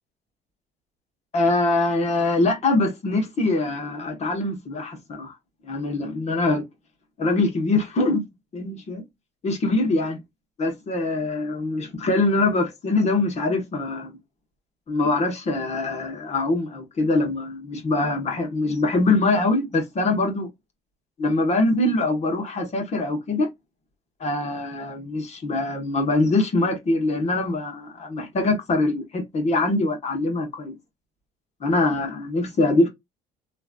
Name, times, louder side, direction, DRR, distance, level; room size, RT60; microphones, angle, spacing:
voice 1, 1.3-5.3 5.6-6.6 7.2-8.2 8.5-9.0 9.4-10.2 10.6-14.1 14.9-20.5 21.2-23.5 24.2-30.7 31.6-32.9, left 2 dB, 40° left, 1.3 m, -23 dB
3.0 x 2.5 x 2.4 m
cardioid pair, 110°, 17 cm